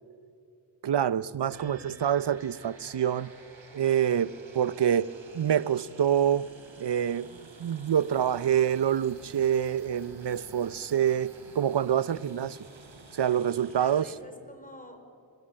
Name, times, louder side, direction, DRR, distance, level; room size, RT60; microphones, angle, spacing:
voice 1, 0.8-3.3 3.7-6.5 6.8-12.6 13.1-14.0, right 9 dB, 65° right, 0.8 m, -26 dB
voice 2, 1.4-2.0 8.0-8.5 13.7-15.0, left 1 dB, 20° left, 5.4 m, -48 dB
sound 1, 1.5-14.1, right 3 dB, 85° right, 3.8 m, -51 dB
25.5 x 24.5 x 9.0 m
cardioid pair, 50°, 45 cm